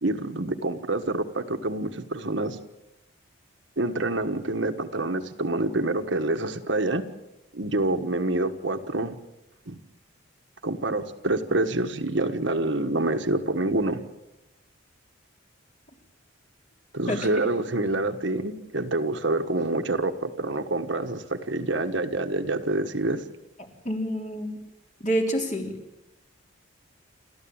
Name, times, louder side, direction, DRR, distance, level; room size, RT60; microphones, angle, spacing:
voice 1, 0.0-2.6 3.8-7.0 7.5-9.2 9.7-9.8 10.6-14.0 16.9-23.2, right 2 dB, 65° right, 6 dB, 1.5 m, -27 dB
voice 2, 23.9-24.6 25.0-25.8, equal, 35° left, 2 dB, 3.6 m, -27 dB
28.5 x 13.5 x 8.9 m, 0.96 s
head